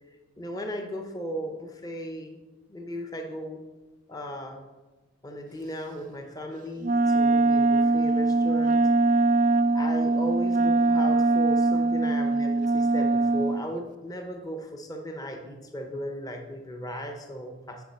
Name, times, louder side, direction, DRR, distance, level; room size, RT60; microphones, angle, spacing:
voice 1, 0.4-2.4 2.7-3.6 4.1-4.7 5.2-9.2 9.7-17.8, equal, 15° left, 4 dB, 0.7 m, -36 dB
Wind instrument woodwind instrument, 6.8-13.6, right 3 dB, 40° right, 0.3 m, -22 dB
9.3 x 5.2 x 5.3 m, 1.2 s
head